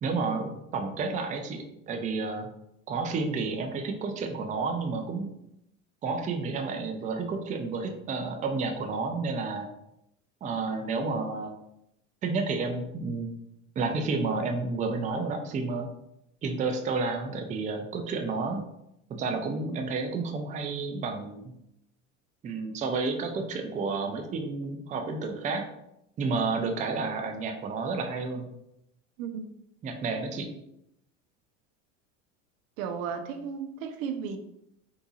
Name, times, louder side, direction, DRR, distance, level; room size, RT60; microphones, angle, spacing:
voice 1, 0.0-2.5 2.9-5.3 6.0-9.7 10.4-11.5 12.2-13.3 13.8-15.9 16.4-18.6 19.1-21.5 22.4-25.6 26.2-28.5 29.8-30.5, right 4 dB, 20° right, 4 dB, 0.4 m, -31 dB
voice 2, 32.8-34.4, right 7 dB, 80° right, 8 dB, 0.5 m, -34 dB
3.8 x 2.6 x 2.4 m, 0.81 s
supercardioid pair, 95°, 39 cm